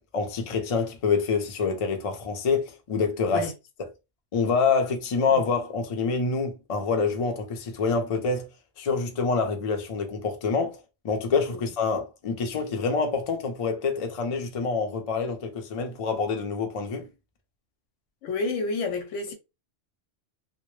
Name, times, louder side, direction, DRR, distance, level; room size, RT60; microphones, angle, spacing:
voice 1, 0.1-3.5 4.3-8.5 8.8-10.8 11.0-17.1, left 4 dB, 50° left, 0.4 m, -26 dB
voice 2, 18.2-19.3, left 3 dB, 90° left, 1.0 m, -29 dB
2.1 x 2.1 x 3.0 m
omnidirectional pair, 1.3 m